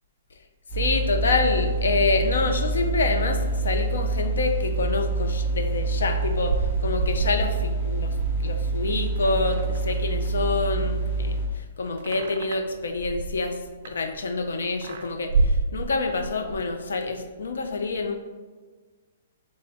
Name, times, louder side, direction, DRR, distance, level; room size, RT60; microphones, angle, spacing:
voice 1, 0.7-8.1 8.4-13.6 13.8-18.2, left 3 dB, 90° left, 6 dB, 0.5 m, -27 dB
sound 1, 0.7-11.5, right 3 dB, 30° left, 1.3 m, -26 dB
sound 2, 6.2-10.4 10.7-14.4 14.8-16.7, right 3 dB, 50° right, 0.3 m, -30 dB
3.5 x 3.3 x 3.9 m, 1.4 s
hypercardioid pair, 165°, 0 cm